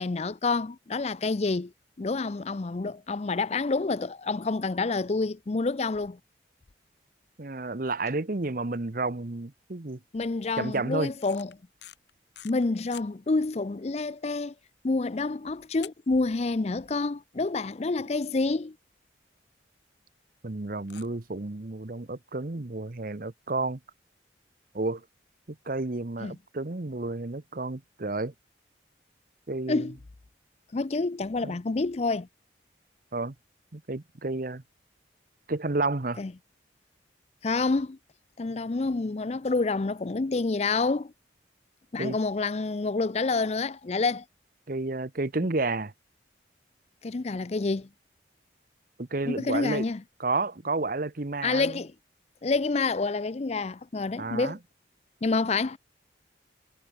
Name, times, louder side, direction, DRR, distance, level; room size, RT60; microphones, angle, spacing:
voice 1, 0.0-1.7 2.0-6.2 10.1-11.5 12.4-14.5 14.8-18.8 26.2-26.4 29.7-30.0 30.7-32.3 36.2-36.3 37.4-38.0 38.4-41.1 41.9-44.2 47.0-47.9 49.3-50.0 51.4-51.9 52.4-54.6 55.2-55.8, left 3 dB, 35° left, 0.5 m, -28 dB
voice 2, 7.4-10.0 10.6-11.1 20.4-23.8 24.7-25.0 25.7-28.3 29.5-29.9 31.4-31.5 33.1-33.3 33.7-34.6 35.5-36.2 42.0-42.2 44.7-45.9 49.0-49.8 50.2-51.8 54.2-54.6, right 3 dB, 50° right, 0.9 m, -31 dB
sound 1, 11.2-13.1 13.6-13.7 14.0-14.2 14.6-14.7 15.8-16.6 16.9-17.0 17.5-17.6 17.9-18.0 18.2-18.3 19.5-19.6 20.8-21.1, left 12 dB, 70° left, 3.9 m, -47 dB
head